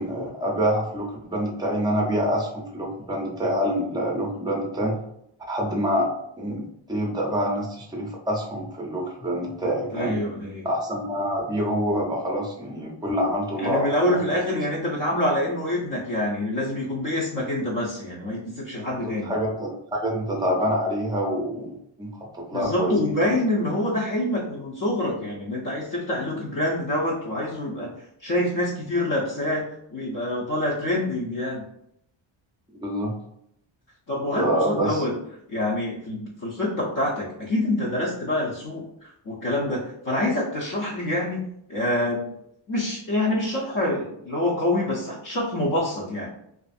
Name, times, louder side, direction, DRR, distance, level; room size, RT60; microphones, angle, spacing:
voice 1, 0.0-5.0 5.5-6.1 6.4-10.2 10.6-14.2 19.2-23.4 32.7-33.1 34.4-35.2, equal, 10° right, -1 dB, 0.5 m, -26 dB
voice 2, 9.9-10.7 13.6-19.3 22.5-27.9 28.2-29.7 29.9-31.6 34.1-35.1 35.5-42.3 42.7-46.3, left 1 dB, 45° left, -4 dB, 0.6 m, -26 dB
2.5 x 2.4 x 2.4 m, 0.74 s
cardioid pair, 120°, 47 cm